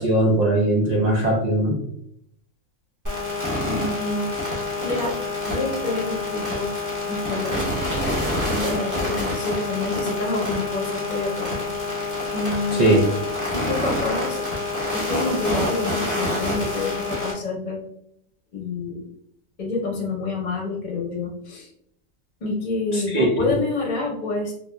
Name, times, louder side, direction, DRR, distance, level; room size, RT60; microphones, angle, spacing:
voice 1, 0.0-1.8 12.7-13.0 22.9-23.5, right 1 dB, 80° right, -3 dB, 0.3 m, -20 dB
sound 1, 3.0-17.3, left 2 dB, 15° right, 0.9 m, -27 dB
voice 2, 3.6-4.3 4.8-5.2 5.5-7.7 8.4-11.6 12.3-12.9 13.5-14.4 14.9-17.8 18.5-19.0 19.6-21.7 22.4-24.5, left 3 dB, 40° left, -2 dB, 0.9 m, -28 dB
4.2 x 2.5 x 2.2 m, 0.71 s
omnidirectional pair, 1.4 m